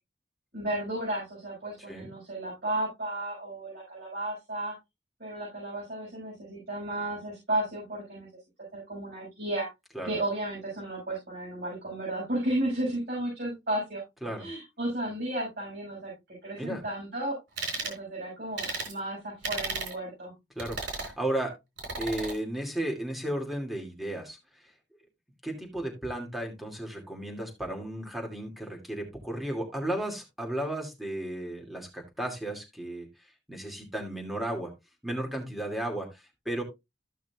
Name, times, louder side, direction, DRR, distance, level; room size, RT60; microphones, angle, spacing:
voice 1, 0.5-4.8 5.2-8.3 8.7-9.7 10.0-14.0 14.4-16.1 16.4-17.4 17.7-20.3, right 1 dB, 65° right, -6 dB, 6.2 m, -33 dB
sound 1, 17.6-18.0 18.6-18.9 19.4-19.9 20.6-21.1 21.8-22.3, right 3 dB, 80° right, 3.6 m, -34 dB
voice 2, 20.6-21.5 22.0-24.4 25.4-33.1 33.5-34.7 35.0-36.6, right 1 dB, ahead, 1 dB, 2.6 m, -34 dB
14.5 x 6.0 x 2.4 m, 0.22 s
head